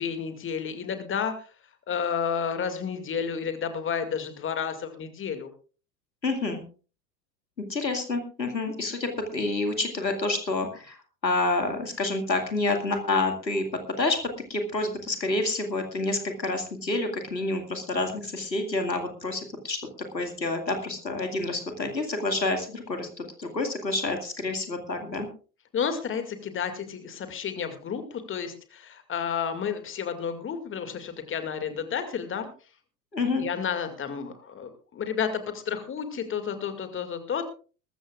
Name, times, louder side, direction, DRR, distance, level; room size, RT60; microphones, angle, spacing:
voice 1, 0.0-1.5 1.9-5.5 25.7-32.5 33.4-37.4, left 7 dB, 25° left, 8 dB, 2.2 m, -31 dB
voice 2, 6.2-6.6 7.7-11.0 11.2-19.8 20.1-25.3 33.1-33.4, left 2 dB, 85° left, 5 dB, 2.2 m, -28 dB
21.0 x 14.0 x 2.4 m, 0.37 s
figure-of-eight pair, 80°, 50 cm